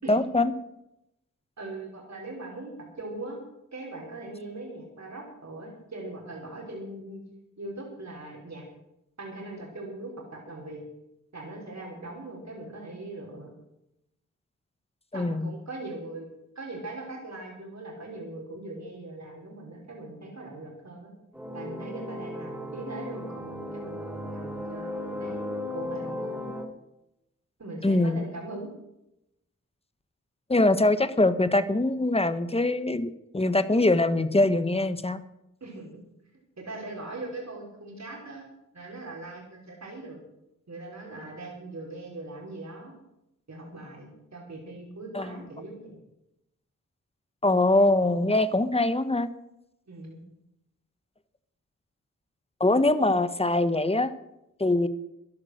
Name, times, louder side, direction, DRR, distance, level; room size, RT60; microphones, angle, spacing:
voice 1, 0.1-0.5 15.1-15.5 27.8-28.3 30.5-35.2 45.1-45.4 47.4-49.3 52.6-54.1 54.6-54.9, left 2 dB, 20° left, 12 dB, 1.3 m, -23 dB
voice 2, 1.6-3.4 3.7-7.2 7.6-8.6 9.2-10.8 11.3-13.5 15.1-16.3 16.6-21.1 21.5-25.4 25.7-26.6 27.6-28.7 35.6-35.9 36.6-38.4 38.7-40.2 40.7-43.0 43.5-46.0 49.9-50.2, right 2 dB, 55° right, -2 dB, 5.2 m, -40 dB
sound 1, 21.3-26.6, left 1 dB, 5° right, 4.3 m, -36 dB
15.0 x 11.0 x 6.6 m, 0.86 s
cardioid pair, 45°, 33 cm